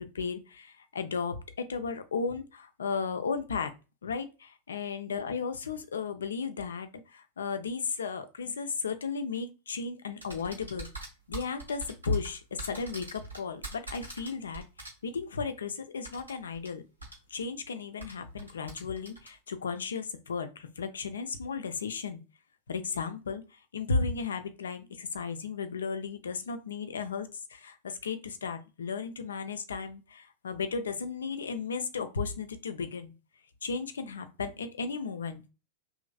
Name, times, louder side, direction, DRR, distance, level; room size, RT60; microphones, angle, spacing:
voice 1, 0.0-3.7 4.0-10.9 11.3-16.8 17.3-22.2 22.7-33.1 33.6-35.5, left 5 dB, 70° left, 9 dB, 0.4 m, -35 dB
sound 1, 10.2-14.9 16.0-16.7 17.0-17.2 18.0-19.3, right 3 dB, 85° right, 1.1 m, -43 dB
3.0 x 2.5 x 2.4 m, 0.30 s
figure-of-eight pair, 90°, 0 cm